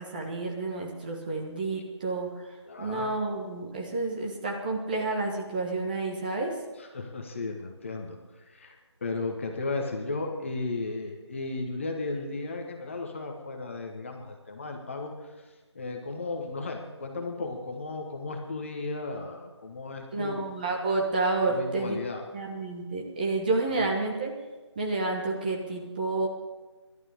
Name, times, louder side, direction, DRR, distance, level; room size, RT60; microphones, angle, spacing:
voice 1, 0.0-6.5 20.1-22.0 22.3-24.3 24.7-26.3, right 3 dB, 20° right, -1 dB, 1.4 m, -30 dB
voice 2, 2.7-3.1 6.8-15.3 15.7-20.5 21.5-22.2 23.8-23.9, left 3 dB, 25° left, 3 dB, 1.3 m, -35 dB
27.5 x 11.5 x 3.7 m, 1.2 s
figure-of-eight pair, 165°, 15 cm